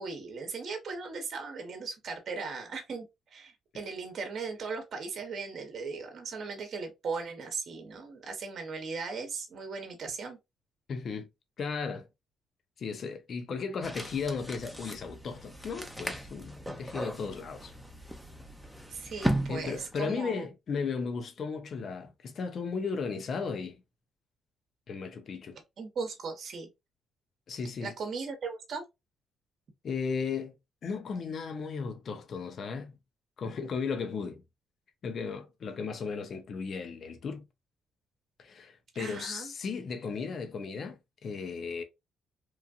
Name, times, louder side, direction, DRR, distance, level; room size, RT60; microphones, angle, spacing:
voice 1, 0.0-10.4 18.9-20.5 25.8-26.7 27.8-28.8 38.9-39.5, right 4 dB, 55° right, 0.8 m, -38 dB
voice 2, 10.9-11.3 11.6-12.1 12.8-17.7 19.5-23.8 24.9-25.6 27.5-27.9 29.8-30.5 30.8-33.0 33.4-34.4 35.0-37.4 38.4-41.8, left 5 dB, 55° left, 0.6 m, -35 dB
sound 1, 13.8-20.1, equal, ahead, 0.6 m, -37 dB
3.0 x 2.5 x 2.3 m
cardioid pair, 90°, 0 cm